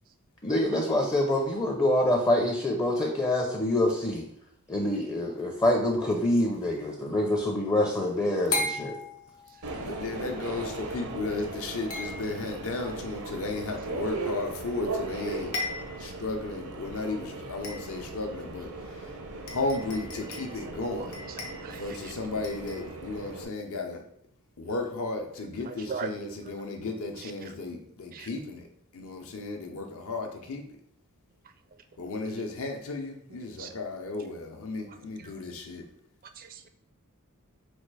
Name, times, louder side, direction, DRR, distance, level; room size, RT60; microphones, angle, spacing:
voice 1, 0.4-4.2 4.7-8.9, left 1 dB, 15° left, 1 dB, 0.5 m, -26 dB
sound 1, 4.8-5.4 8.5-9.8 11.9-12.7 14.8-14.9 15.2-15.3 15.5-16.2 16.7-16.8 17.6-18.2 19.0-19.1 19.5-20.6 21.1-22.1 22.4-22.9, left 2 dB, 85° left, 1.0 m, -36 dB
Subway metro underground, 9.6-23.4, right 3 dB, 85° right, 0.8 m, -38 dB
voice 2, 9.7-15.5 16.0-19.2 19.5-21.2 21.7-24.0 24.6-28.7 28.9-30.8 32.0-35.9, left 3 dB, 65° left, 3 dB, 0.7 m, -34 dB
voice 3, 20.7-21.1 21.6-22.1 25.7-26.3 26.6-26.7 27.2-27.3 28.1-28.3 33.6-33.7 36.4-36.7, right 6 dB, 40° right, 9 dB, 0.4 m, -39 dB
4.2 x 2.4 x 4.7 m, 0.70 s
head